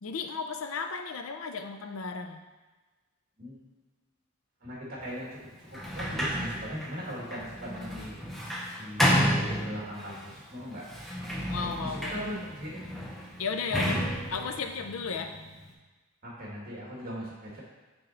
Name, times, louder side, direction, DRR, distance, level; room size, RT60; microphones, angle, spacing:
voice 1, 0.0-2.4 11.5-12.3 13.4-14.0 14.3-15.4, left 5 dB, 70° left, 6 dB, 0.5 m, -34 dB
voice 2, 4.6-8.2 8.8-10.8 11.2-11.3 11.8-12.8 13.7-13.8 14.3-14.4 16.2-17.6, equal, 45° right, -5 dB, 2.0 m, -39 dB
Sliding door, 5.7-10.2 10.8-15.7, equal, ahead, 0.7 m, -31 dB
6.2 x 3.8 x 4.3 m, 1.3 s
head